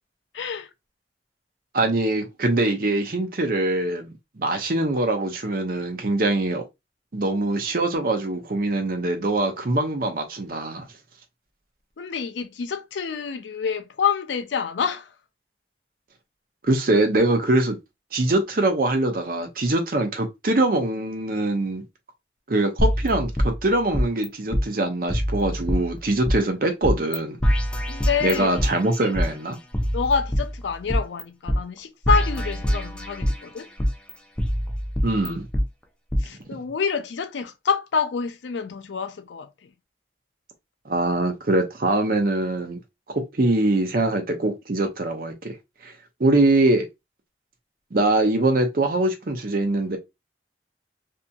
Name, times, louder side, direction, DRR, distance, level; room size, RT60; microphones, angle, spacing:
voice 1, 0.3-0.7 12.0-15.1 27.9-28.5 29.9-33.7 36.2-39.7, left 6 dB, 80° left, 0.4 m, -27 dB
voice 2, 1.7-6.6 7.1-10.8 16.6-17.8 18.1-21.8 22.5-27.4 28.2-29.6 35.0-35.5 40.9-42.8 43.4-45.5 45.8-45.9 46.2-46.8 47.9-50.0, right 2 dB, 50° right, 0.6 m, -23 dB
sound 1, 22.8-24.3 24.5-24.6 25.1-26.4 26.8-27.2 27.4-29.3 29.7-31.2 31.5-31.6 32.0-33.4 33.8-35.6 36.1-36.2, equal, 5° left, 0.3 m, -24 dB
2.7 x 2.7 x 2.2 m
head